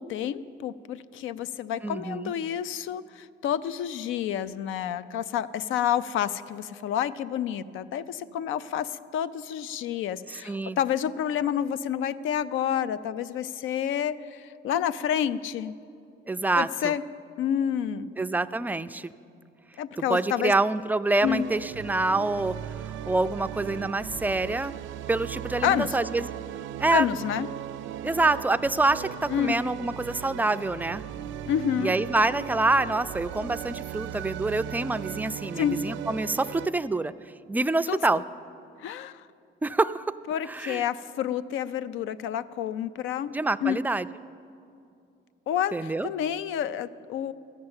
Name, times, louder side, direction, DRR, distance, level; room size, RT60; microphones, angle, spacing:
voice 1, 0.0-15.7 16.6-17.0 17.4-18.1 19.8-20.5 21.2-21.4 25.6-26.0 26.9-27.5 29.3-29.6 31.5-31.9 35.6-35.8 37.9-38.2 38.8-39.3 40.3-43.3 43.6-43.8 45.5-47.3, left 9 dB, 85° left, 16 dB, 0.4 m, -29 dB
voice 2, 1.8-2.3 10.3-10.8 16.3-16.9 18.2-19.1 20.1-22.6 22.8-24.7 25.1-26.3 26.8-27.1 28.0-31.0 31.8-37.1 37.5-38.2 39.6-40.1 40.5-40.8 43.3-44.1 45.7-46.1, right 2 dB, 10° right, 12 dB, 0.3 m, -26 dB
sound 1, 21.2-36.7, right 11 dB, 75° right, 0.4 m, -38 dB
13.5 x 6.7 x 8.8 m, 2.6 s
cardioid pair, 90°, 20 cm